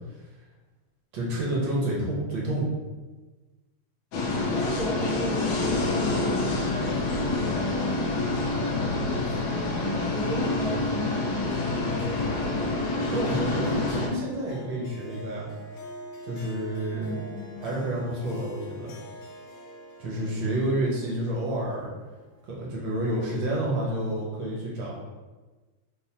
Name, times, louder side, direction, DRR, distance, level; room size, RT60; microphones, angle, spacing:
voice 1, 1.1-2.7 13.1-15.5 16.3-17.1 17.6-18.9 20.0-21.9 22.5-24.9, right 1 dB, 70° right, -4 dB, 1.7 m, -29 dB
sound 1, 4.1-14.1, left 2 dB, 65° left, 1.1 m, -27 dB
voice 2, 4.5-7.0 7.4-11.9 16.9-17.7, equal, ahead, -8 dB, 0.5 m, -35 dB
Harp, 12.0-22.6, equal, 85° left, 1.5 m, -45 dB
4.1 x 3.9 x 2.8 m, 1.2 s
omnidirectional pair, 2.2 m